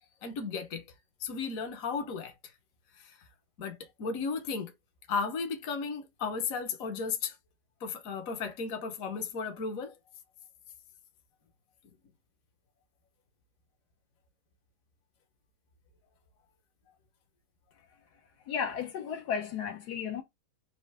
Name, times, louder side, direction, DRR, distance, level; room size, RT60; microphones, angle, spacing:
voice 1, 0.2-0.8 1.2-2.3 3.0-3.2 3.6-4.7 5.1-7.4 7.8-9.9, left 5 dB, 60° left, 1.2 m, -34 dB
voice 2, 18.5-20.2, left 7 dB, 75° left, 1.2 m, -34 dB
4.3 x 2.5 x 4.7 m
omnidirectional pair, 1.8 m